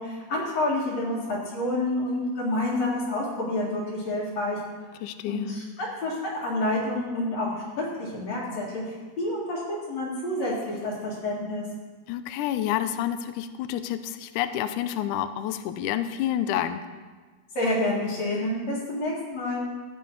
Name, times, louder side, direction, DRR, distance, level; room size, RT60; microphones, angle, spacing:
voice 1, 0.0-4.6 5.2-9.6 9.9-11.6 17.5-19.6, left 1 dB, 55° left, -8 dB, 3.1 m, -28 dB
voice 2, 5.0-5.6 12.1-16.8, left 11 dB, 80° left, 11 dB, 1.9 m, -29 dB
16.0 x 8.7 x 3.9 m, 1.4 s
omnidirectional pair, 3.9 m